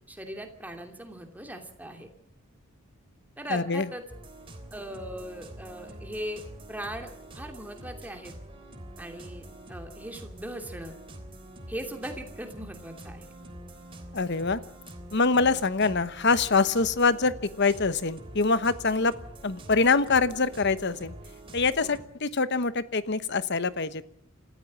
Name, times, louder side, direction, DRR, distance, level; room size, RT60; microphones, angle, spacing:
voice 1, 0.1-2.1 3.4-4.0 4.7-6.4 6.7-7.1 7.3-8.3 9.0-10.9 11.7-13.3 21.8-21.9, right 1 dB, 10° right, 4 dB, 2.8 m, -39 dB
voice 2, 3.5-3.9 14.1-14.6 15.1-19.1 19.4-21.1 21.5-24.0, left 4 dB, 55° left, 14 dB, 1.1 m, -24 dB
sound 1, 4.1-22.0, right 1 dB, 25° right, 3.4 m, -45 dB
27.0 x 14.5 x 7.4 m, 0.68 s
head